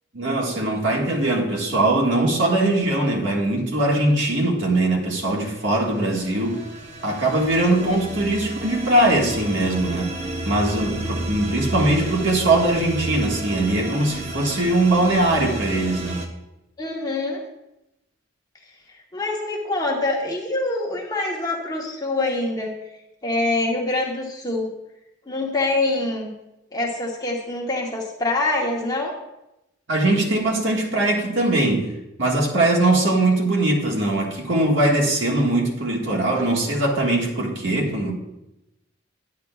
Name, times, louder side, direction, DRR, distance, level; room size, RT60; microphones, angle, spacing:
voice 1, 0.1-6.6 7.0-10.1 10.4-16.2 29.9-31.9 32.2-38.1, right 2 dB, 80° right, -2 dB, 1.6 m, -21 dB
sound 1, 5.3-16.3, right 1 dB, 35° right, 0.9 m, -32 dB
voice 2, 16.8-17.4 19.1-22.8 23.2-24.7 25.3-26.3 26.7-29.1, left 2 dB, 20° left, -2 dB, 1.0 m, -25 dB
9.6 x 9.4 x 2.3 m, 0.92 s
head